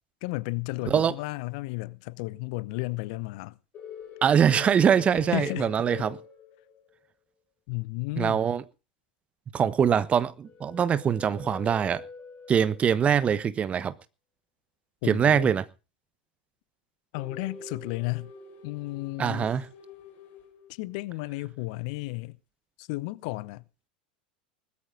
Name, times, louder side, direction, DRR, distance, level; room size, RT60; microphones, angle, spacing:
voice 1, 0.2-3.5 5.3-5.7 7.7-8.4 15.0-15.5 17.1-18.3 18.6-19.5 20.8-22.4 22.8-23.6, left 22 dB, 55° left, 0.9 m, -33 dB
sound 1, 3.7-6.9 10.4-13.0 17.1-21.0, left 6 dB, 35° left, 5.8 m, -45 dB
voice 2, 4.2-6.2 8.1-8.6 9.5-12.0 12.5-13.9 15.0-15.6 19.2-19.7, right 8 dB, 25° right, 1.1 m, -23 dB
19.5 x 13.0 x 3.8 m
figure-of-eight pair, 85°, 5 cm